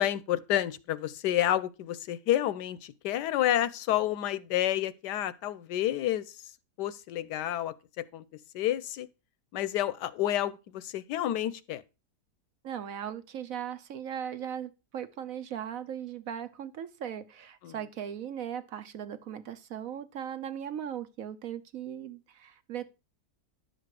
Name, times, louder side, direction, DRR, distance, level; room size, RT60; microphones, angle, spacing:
voice 1, 0.0-6.3 6.8-8.2 8.5-9.1 9.5-11.8 17.6-17.7, left 12 dB, 85° left, 1.3 m, -29 dB
voice 2, 12.6-22.9, right 9 dB, 65° right, 1.1 m, -38 dB
11.0 x 6.8 x 4.8 m
omnidirectional pair, 1.8 m